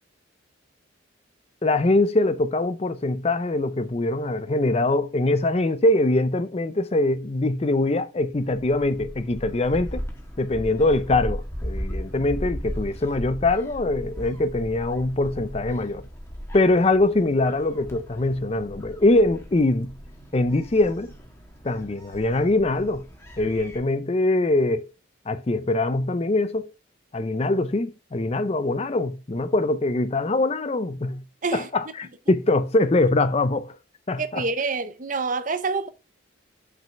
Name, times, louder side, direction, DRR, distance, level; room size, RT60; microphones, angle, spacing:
voice 1, 1.6-10.0 10.4-16.0 16.5-19.9 20.3-21.1 21.6-23.0 23.4-24.9 25.3-26.7 27.1-31.2 31.5-33.7 34.1-34.4, left 2 dB, 30° left, 0.5 m, -23 dB
Gull seagull, 8.3-23.8, equal, 15° left, 1.4 m, -37 dB
voice 2, 34.2-35.9, right 4 dB, 40° right, 0.6 m, -27 dB
6.1 x 5.3 x 5.6 m
head